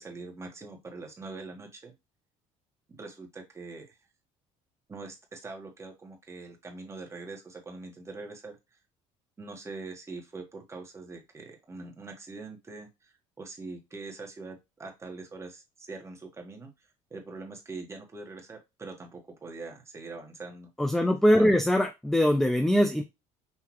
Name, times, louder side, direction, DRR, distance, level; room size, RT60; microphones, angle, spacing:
voice 1, 0.0-1.9 2.9-4.0 4.9-8.8 9.4-20.7 21.4-21.6, right 3 dB, 20° right, 2 dB, 1.5 m, -43 dB
voice 2, 20.8-23.0, equal, ahead, 6 dB, 0.5 m, -22 dB
5.8 x 2.8 x 3.1 m, 0.23 s
cardioid pair, 115°, 14 cm